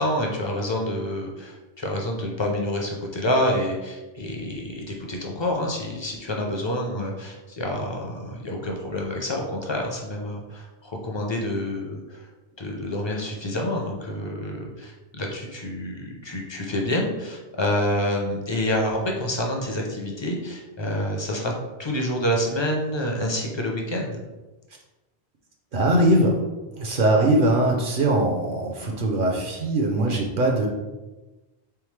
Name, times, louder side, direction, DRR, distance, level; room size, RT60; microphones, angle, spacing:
voice 1, 0.0-12.2 12.6-21.5 21.8-24.2, left 1 dB, 35° left, 0 dB, 0.5 m, -27 dB
voice 2, 25.7-26.4 26.8-30.7, right 1 dB, 55° right, 1 dB, 0.7 m, -21 dB
3.5 x 3.5 x 3.2 m, 1.1 s
omnidirectional pair, 1.1 m